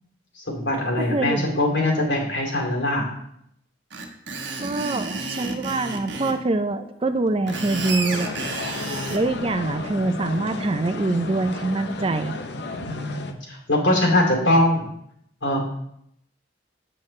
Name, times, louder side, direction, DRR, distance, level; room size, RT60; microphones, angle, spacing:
voice 1, 0.5-3.1 12.9-14.9 15.4-15.7, left 1 dB, 90° left, -1 dB, 2.8 m, -22 dB
voice 2, 1.1-1.5 4.6-8.3 9.1-12.4, right 2 dB, 30° right, 10 dB, 0.5 m, -24 dB
Screech, 3.9-6.4 7.3-9.2, right 3 dB, 70° right, 1.1 m, -31 dB
sound 1, 7.5-13.3, left 3 dB, 60° left, 0.7 m, -33 dB
8.8 x 7.6 x 3.2 m, 0.73 s
head